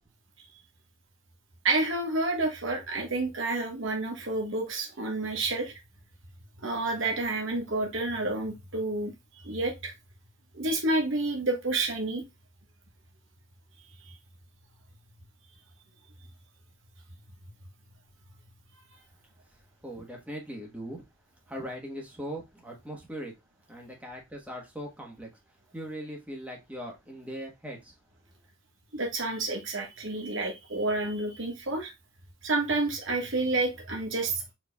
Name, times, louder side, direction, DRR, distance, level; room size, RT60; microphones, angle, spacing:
voice 1, 1.6-5.8 6.6-9.1 9.4-9.9 10.5-12.2 14.0-14.2 28.9-31.9 32.4-34.4, right 2 dB, 65° right, 1.3 m, -29 dB
voice 2, 19.8-21.0 21.5-23.3 23.7-25.3 25.7-28.0, equal, 5° right, 1.2 m, -40 dB
4.4 x 4.3 x 2.2 m
head